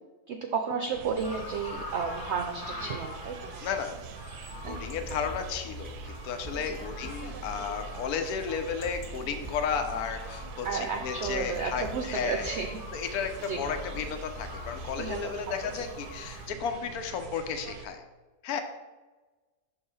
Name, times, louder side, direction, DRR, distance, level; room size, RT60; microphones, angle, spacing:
voice 1, 0.3-3.7 4.6-4.8 6.6-6.8 10.6-12.8 13.5-13.6 15.0-15.2, right 5 dB, 65° right, 4 dB, 0.7 m, -32 dB
sound 1, 0.9-17.9, right 7 dB, 85° right, 1.1 m, -45 dB
sound 2, 1.2-16.5, left 2 dB, 35° left, 1.1 m, -45 dB
voice 2, 3.6-4.0 4.7-12.5 12.9-18.0 18.4-18.6, left 6 dB, 75° left, 7 dB, 1.2 m, -33 dB
sound 3, 4.5-15.2, left 1 dB, 5° right, 1.1 m, -44 dB
5.9 x 3.6 x 5.4 m, 1.2 s
omnidirectional pair, 1.6 m